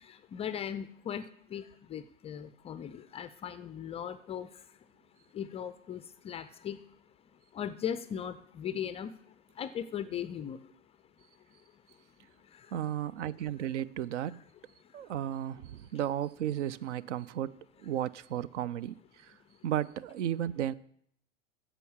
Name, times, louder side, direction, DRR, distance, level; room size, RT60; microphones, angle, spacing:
voice 1, 0.3-1.6 1.9-4.5 5.3-6.8 7.5-9.1 9.6-10.6, left 9 dB, 15° left, 0.3 m, -38 dB
voice 2, 12.7-14.4 14.9-19.0 19.2-19.3 19.6-20.7, right 11 dB, 70° right, 0.6 m, -34 dB
9.9 x 7.0 x 7.2 m
hypercardioid pair, 100°, 37 cm